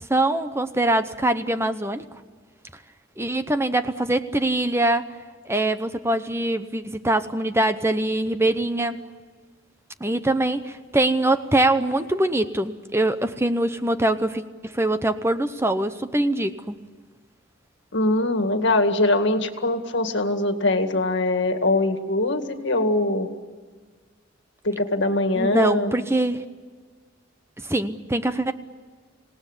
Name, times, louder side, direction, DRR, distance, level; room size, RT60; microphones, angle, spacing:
voice 1, 0.1-2.0 3.2-5.1 5.5-9.0 10.0-16.8 25.4-26.4 27.6-28.5, right 1 dB, 15° right, 10 dB, 0.8 m, -23 dB
voice 2, 17.9-23.3 24.6-25.9, left 2 dB, 65° left, 6 dB, 2.1 m, -22 dB
26.5 x 18.5 x 9.9 m, 1.5 s
head